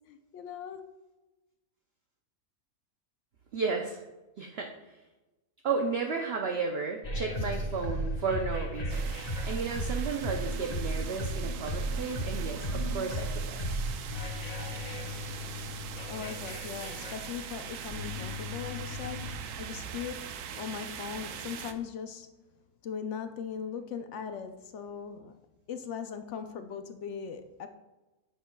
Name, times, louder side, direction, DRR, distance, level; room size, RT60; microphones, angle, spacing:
voice 1, 0.1-0.8 16.1-22.3 22.8-25.4 25.7-27.7, left 7 dB, 65° left, 8 dB, 0.7 m, -39 dB
voice 2, 3.5-4.0 4.4-4.7 5.6-13.6, right 4 dB, 55° right, 3 dB, 0.7 m, -33 dB
sound 1, 7.0-19.4, equal, 35° left, 0.7 m, -35 dB
sound 2, 8.9-21.7, right 8 dB, 80° right, 1.1 m, -42 dB
10.0 x 7.3 x 2.2 m, 1.1 s
omnidirectional pair, 1.6 m